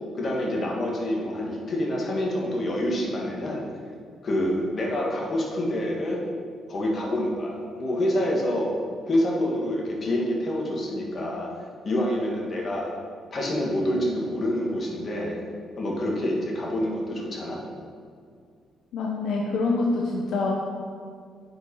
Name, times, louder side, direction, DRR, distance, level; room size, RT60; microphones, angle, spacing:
voice 1, 0.1-3.6 4.2-6.2 6.7-8.7 9.1-11.5 11.8-12.9 13.3-15.4 15.8-17.6, left 1 dB, 45° left, -1 dB, 1.8 m, -27 dB
voice 2, 18.9-20.5, left 3 dB, 75° left, -1 dB, 0.8 m, -25 dB
7.9 x 4.9 x 5.4 m, 2.2 s
cardioid pair, 90°, 0 cm